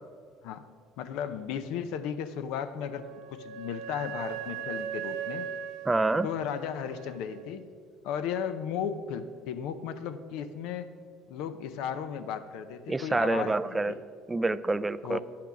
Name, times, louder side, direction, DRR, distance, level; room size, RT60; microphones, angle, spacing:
voice 1, 1.0-3.1 3.3-5.5 6.2-7.6 8.0-10.9 11.3-14.0 15.0-15.2, left 8 dB, 80° left, 11 dB, 0.5 m, -35 dB
Wind instrument woodwind instrument, 2.8-7.4, right 7 dB, 75° right, 0.6 m, -39 dB
voice 2, 5.9-6.3 12.9-13.9 14.3-15.2, right 2 dB, 15° right, 14 dB, 0.3 m, -27 dB
10.0 x 5.9 x 5.9 m, 2.1 s
cardioid pair, 115°, 0 cm